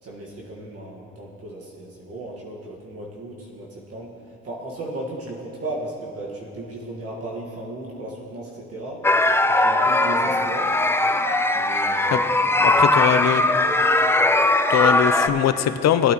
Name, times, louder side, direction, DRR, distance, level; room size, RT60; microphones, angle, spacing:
voice 1, 0.0-9.1 9.5-10.8 11.5-12.4 12.8-13.6, right 1 dB, 50° right, -4 dB, 1.6 m, -36 dB
sound 1, 9.0-15.3, left 2 dB, 10° left, 0.5 m, -19 dB
voice 2, 12.6-13.4 14.7-16.1, left 10 dB, 60° left, 11 dB, 0.6 m, -21 dB
18.5 x 8.9 x 3.0 m, 2.8 s
cardioid pair, 90°, 30 cm